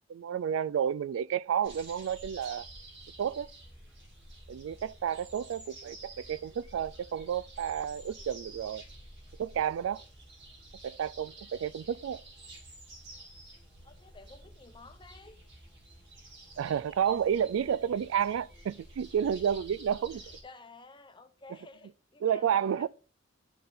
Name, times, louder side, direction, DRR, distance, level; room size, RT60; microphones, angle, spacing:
voice 1, 0.1-2.7 3.2-3.5 4.5-8.8 9.4-10.0 10.8-12.2 16.6-20.2 22.2-22.9, right 8 dB, 90° right, 0.3 m, -31 dB
sound 1, 1.6-20.4, right 1 dB, 60° right, 2.7 m, -50 dB
voice 2, 13.8-15.4 20.1-22.9, left 3 dB, 25° left, 0.7 m, -53 dB
11.0 x 4.0 x 3.9 m
head